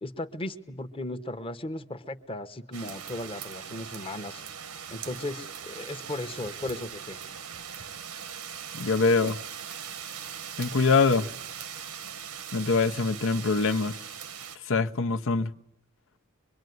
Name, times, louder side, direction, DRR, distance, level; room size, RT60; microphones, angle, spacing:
voice 1, 0.0-4.4 4.9-7.2, left 1 dB, 25° left, 1.1 m, -36 dB
sound 1, 2.7-14.6, right 8 dB, 80° right, 1.2 m, -40 dB
voice 2, 8.7-9.4 10.6-11.3 12.5-13.9 14.7-15.5, left 4 dB, 60° left, 1.0 m, -24 dB
24.5 x 23.0 x 9.5 m
head